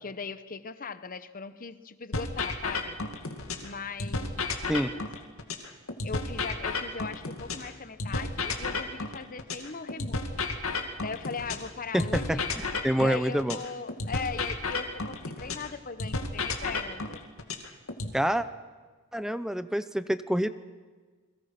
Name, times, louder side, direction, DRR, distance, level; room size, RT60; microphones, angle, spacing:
voice 1, 0.0-3.0 3.6-5.1 6.0-10.4 11.0-12.5 13.0-17.2, left 5 dB, 40° left, 12 dB, 1.0 m, -39 dB
sound 1, 2.1-3.7 4.0-7.7 8.0-11.7 12.0-15.7 16.0-18.1, left 3 dB, 75° left, 2.4 m, -32 dB
voice 2, 11.9-12.4 12.8-13.6 18.1-18.4 19.1-20.5, equal, 5° right, 12 dB, 0.7 m, -26 dB
29.0 x 22.5 x 6.0 m, 1.4 s
head